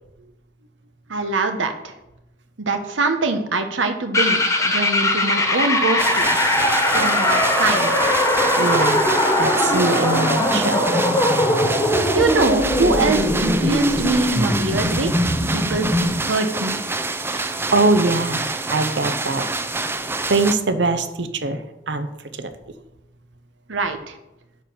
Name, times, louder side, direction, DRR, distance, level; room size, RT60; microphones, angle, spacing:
voice 1, 1.1-1.9 2.7-6.3 6.9-8.0 12.1-15.2 15.5-16.8 23.7-24.2, right 3 dB, 90° right, 7 dB, 1.1 m, -23 dB
sound 1, 4.1-16.2, left 1 dB, 15° left, 1.3 m, -20 dB
sound 2, 6.0-20.5, right 3 dB, 10° right, 0.4 m, -27 dB
voice 2, 8.6-9.0 9.4-10.9 17.3-19.4 20.3-21.6 21.9-22.1 22.4-22.5, right 3 dB, 65° right, 9 dB, 0.8 m, -22 dB
10.5 x 4.5 x 6.6 m, 0.92 s
head